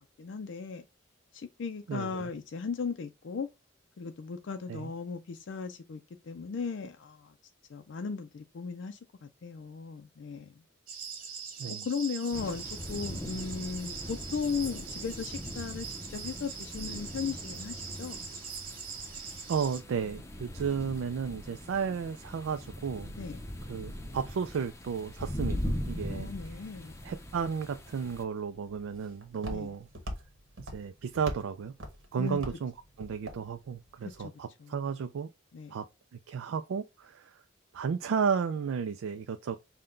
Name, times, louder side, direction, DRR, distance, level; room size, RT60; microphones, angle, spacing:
voice 1, 0.2-0.8 1.3-3.5 4.0-7.3 7.7-10.5 11.8-18.2 23.2-23.4 26.1-26.9 29.5-29.7 32.2-32.4 34.0-34.3 34.6-34.7 35.5-35.8, left 5 dB, 65° left, 0.4 m, -37 dB
voice 2, 1.9-2.3 4.7-4.9 11.6-11.9 19.5-23.1 23.7-26.3 27.0-29.9 30.6-31.7 32.1-32.7 33.0-35.3 35.7-35.8 36.3-37.4 37.7-39.6, right 6 dB, 85° right, 0.3 m, -33 dB
sound 1, 10.9-19.8, right 6 dB, 45° right, 1.2 m, -42 dB
sound 2, 12.3-28.2, left 1 dB, 15° left, 0.6 m, -40 dB
Walk footsteps, 28.0-34.2, equal, 70° right, 1.2 m, -44 dB
5.6 x 2.2 x 3.7 m
head